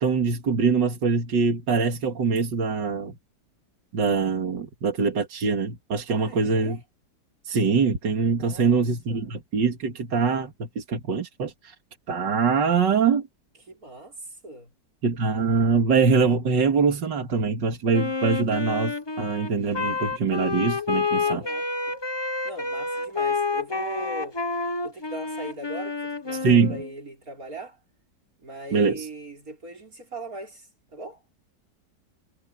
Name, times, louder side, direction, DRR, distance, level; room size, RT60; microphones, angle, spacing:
voice 1, 0.0-3.2 3.9-6.8 7.4-11.7 12.1-13.2 15.0-21.4 26.3-26.8 28.7-29.1, right 5 dB, 80° right, 2.7 m, -23 dB
voice 2, 6.1-6.8 8.3-9.3 13.7-14.7 21.2-22.0 22.4-24.4 24.8-27.8 28.4-31.2, right 2 dB, 50° right, 5.5 m, -40 dB
Wind instrument woodwind instrument, 17.9-26.9, left 4 dB, 20° left, 0.7 m, -29 dB
omnidirectional pair, 1.9 m